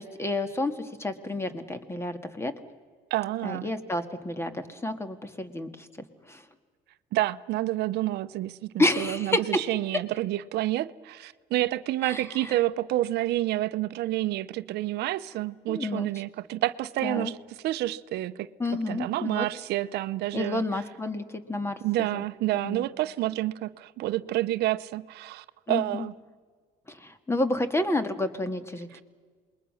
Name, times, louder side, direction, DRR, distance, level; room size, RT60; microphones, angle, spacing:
voice 1, 0.0-2.5 3.4-5.9 6.3-6.4 8.8-9.6 12.1-12.6 15.7-16.1 17.0-17.3 18.6-19.5 20.3-22.2 22.5-22.8 25.7-26.0 26.9-28.9, left 2 dB, 15° left, 1.8 m, -30 dB
voice 2, 3.1-3.7 7.1-17.4 17.6-18.5 18.9-20.6 21.8-26.1 28.9-29.0, right 15 dB, 80° right, 0.7 m, -29 dB
27.5 x 21.0 x 6.3 m
cardioid pair, 110°, 17 cm